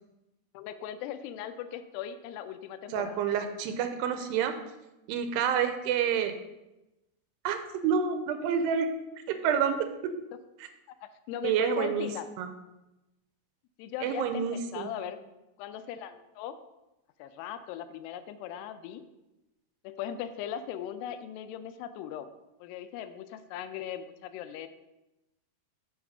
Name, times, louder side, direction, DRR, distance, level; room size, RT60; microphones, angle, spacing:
voice 1, 0.5-3.2 11.3-12.3 13.8-15.2 15.6-16.6 17.2-19.0 19.8-22.3 22.6-24.7, left 9 dB, 85° left, 11 dB, 2.6 m, -39 dB
voice 2, 2.9-4.5 5.1-6.3 7.4-7.6 7.8-8.9 9.3-9.8 11.4-12.1 12.4-12.5 14.0-14.9, right 7 dB, 85° right, 8 dB, 2.7 m, -28 dB
7.7 x 5.9 x 5.4 m, 0.97 s
omnidirectional pair, 4.8 m